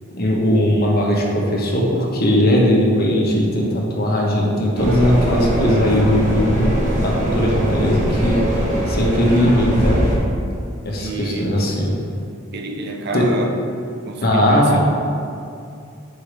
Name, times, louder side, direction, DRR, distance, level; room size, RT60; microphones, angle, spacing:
voice 1, 0.1-8.5 8.9-10.0 10.8-11.9 13.1-13.2 14.2-14.8, equal, 50° left, -2 dB, 1.0 m, -18 dB
sound 1, 4.7-10.2, equal, 40° right, 1.2 m, -21 dB
voice 2, 10.9-11.6 12.5-13.6 14.1-14.8, right 2 dB, 55° right, 4 dB, 0.6 m, -28 dB
4.9 x 4.7 x 5.0 m, 2.4 s
head